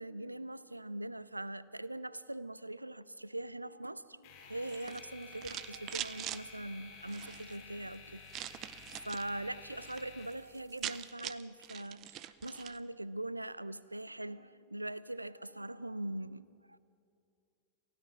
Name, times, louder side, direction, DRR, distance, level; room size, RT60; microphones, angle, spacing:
voice 1, 0.0-8.2 8.9-16.8, right 1 dB, 85° right, 0.4 m, -42 dB
sound 1, 4.2-11.0, left 5 dB, 45° left, 4.2 m, -53 dB
sound 2, 4.6-6.4 7.0-7.6 8.3-9.3 9.6-10.0 10.3-10.4 10.6-12.8, right 13 dB, 35° right, 0.6 m, -43 dB
28.0 x 16.0 x 5.8 m
figure-of-eight pair, 90°, 0 cm